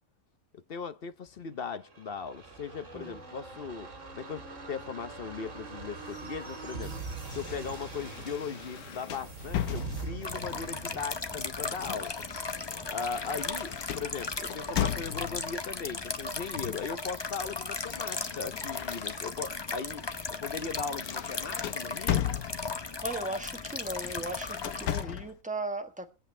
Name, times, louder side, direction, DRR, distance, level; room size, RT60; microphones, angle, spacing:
voice 1, 0.7-3.9 4.1-6.9 7.3-12.1 12.9-20.0 20.3-22.3, left 5 dB, 45° left, 0.9 m, -38 dB
sound 1, 1.7-15.2 15.5-15.6, right 3 dB, 55° right, 2.6 m, -43 dB
sound 2, 7.3-10.4 11.3-15.5 16.6-16.9 17.2-19.5 20.0-20.2 20.6-23.0 23.9-25.4, left 11 dB, 80° left, 1.3 m, -37 dB
sound 3, 10.2-25.0, left 4 dB, 30° left, 0.5 m, -36 dB
voice 2, 23.0-26.1, right 2 dB, 5° right, 1.2 m, -37 dB
22.0 x 8.1 x 3.3 m
omnidirectional pair, 1.5 m